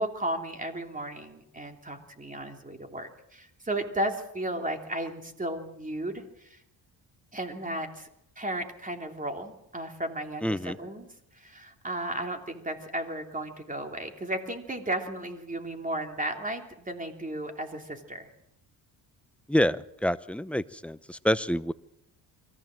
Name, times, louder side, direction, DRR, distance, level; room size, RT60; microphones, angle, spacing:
voice 1, 0.0-6.6 7.3-8.1 8.4-11.1 11.3-18.3, right 1 dB, 20° right, 4 dB, 3.1 m, -34 dB
voice 2, 10.4-10.8 19.5-21.7, equal, 5° left, 13 dB, 0.7 m, -27 dB
23.5 x 15.0 x 7.6 m, 0.82 s
cardioid pair, 95°, 43 cm